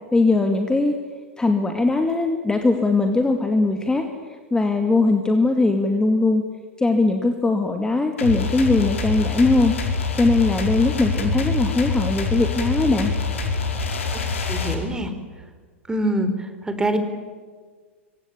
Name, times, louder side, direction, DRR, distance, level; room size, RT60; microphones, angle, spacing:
voice 1, 0.1-1.0 1.4-6.4 6.8-9.7 10.2-13.1, left 3 dB, 10° left, 5 dB, 2.4 m, -20 dB
sound 1, 8.2-14.7, left 4 dB, 75° left, 4.9 m, -25 dB
voice 2, 14.1-15.1 15.9-17.0, right 1 dB, 10° right, 9 dB, 4.0 m, -25 dB
26.5 x 24.5 x 8.5 m, 1.5 s
figure-of-eight pair, 95°, 7 cm